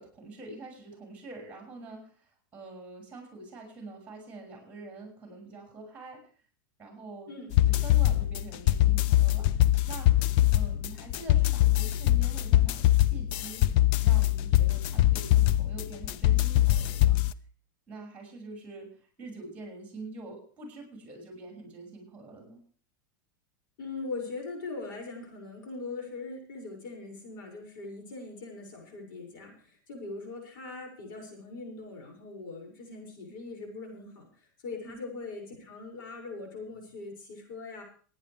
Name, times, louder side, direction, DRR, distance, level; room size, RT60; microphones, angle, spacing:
voice 1, 0.0-6.2 6.8-7.3 7.6-9.6 9.9-10.3 10.5-13.6 14.0-17.2 17.9-18.9 19.2-22.6 34.8-35.0, right 2 dB, 15° right, 0 dB, 6.1 m, -45 dB
voice 2, 7.3-7.6 23.8-34.3 34.6-37.8, left 3 dB, 75° left, 1 dB, 6.2 m, -41 dB
sound 1, 7.5-17.3, left 14 dB, 50° left, 0.6 m, -23 dB
27.5 x 9.6 x 3.4 m, 0.41 s
supercardioid pair, 130°, 11 cm